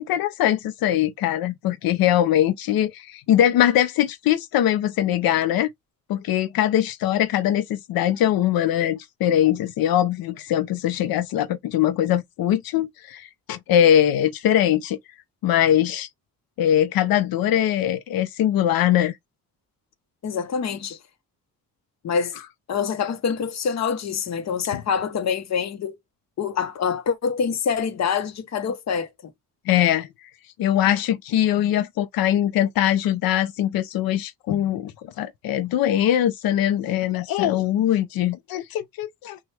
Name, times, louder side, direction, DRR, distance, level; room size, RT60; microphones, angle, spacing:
voice 1, 0.0-5.7 6.1-15.0 15.4-16.1 16.6-19.2 24.7-24.8 29.7-30.3 30.6-39.4, left 11 dB, 85° left, 0.6 m, -22 dB
voice 2, 20.2-21.0 22.0-22.4 22.7-26.0 26.4-29.3, left 6 dB, 50° left, 0.9 m, -26 dB
6.1 x 2.3 x 3.2 m
cardioid pair, 130°, 35 cm